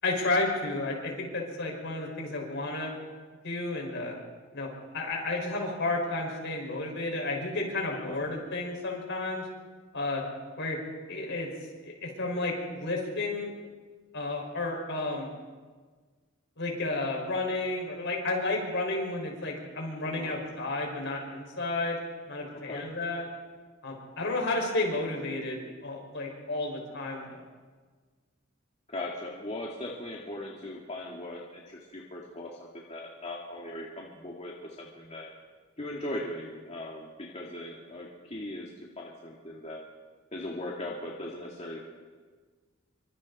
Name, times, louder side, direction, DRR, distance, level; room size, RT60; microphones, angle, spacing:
voice 1, 0.0-3.0 3.4-4.2 4.5-4.7 4.9-9.5 9.9-10.2 10.6-10.8 11.1-11.5 11.8-13.5 14.1-15.3 16.6-22.0 22.3-23.2 23.8-27.4, left 2 dB, 60° left, 0 dB, 5.6 m, -32 dB
voice 2, 20.0-20.3 22.5-22.8 28.9-35.3 35.8-38.7 39.0-39.8 40.3-41.8, left 1 dB, 35° left, -3 dB, 2.2 m, -39 dB
27.0 x 25.0 x 4.3 m, 1.5 s
head